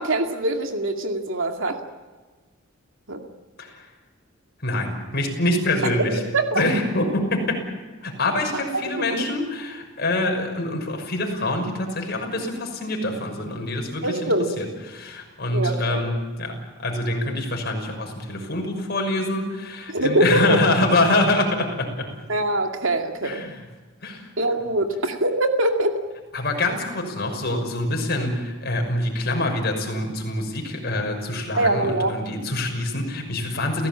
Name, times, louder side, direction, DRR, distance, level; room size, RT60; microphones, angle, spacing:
voice 1, 0.0-1.8 3.1-3.2 6.3-6.6 8.5-9.3 14.0-14.5 15.5-16.0 19.9-20.6 22.3-23.4 24.4-26.0 31.6-32.2, right 1 dB, 70° right, 5 dB, 2.3 m, -23 dB
voice 2, 4.6-6.2 6.5-7.6 8.0-22.1 23.2-23.6 24.0-24.3 26.3-33.9, left 2 dB, 50° left, 3 dB, 6.1 m, -25 dB
29.5 x 17.0 x 8.8 m, 1.3 s
head